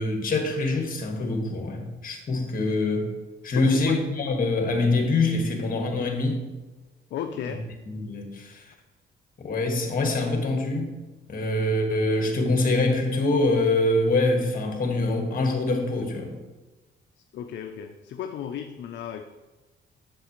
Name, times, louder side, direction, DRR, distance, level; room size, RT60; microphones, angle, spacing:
voice 1, 0.0-3.1 3.4-6.4 7.9-8.7 9.4-10.9 11.3-16.4, left 2 dB, 45° left, 3 dB, 1.6 m, -24 dB
voice 2, 3.5-4.0 7.1-7.7 17.2-19.2, left 8 dB, 65° left, 7 dB, 0.5 m, -34 dB
7.6 x 7.3 x 3.0 m, 1.2 s
cardioid pair, 90°, 20 cm